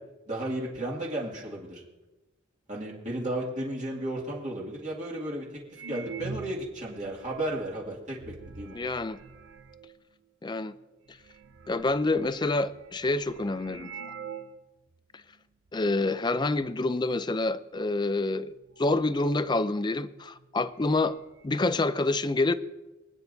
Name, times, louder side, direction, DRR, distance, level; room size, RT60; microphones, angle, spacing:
voice 1, 0.3-1.8 2.7-8.8, right 1 dB, 35° right, 2.2 m, -34 dB
sound 1, 5.7-10.0 10.7-10.8 11.1-14.6 14.9-15.0 15.7-16.0 16.3-16.8 18.0-18.1 18.5-20.1 20.4-20.5 20.7-21.5, right 5 dB, 70° right, 0.6 m, -45 dB
voice 2, 8.7-9.2 10.4-10.7 11.7-13.9 15.7-21.2 21.4-22.5, left 2 dB, 20° left, 0.4 m, -27 dB
25.0 x 9.0 x 2.7 m
head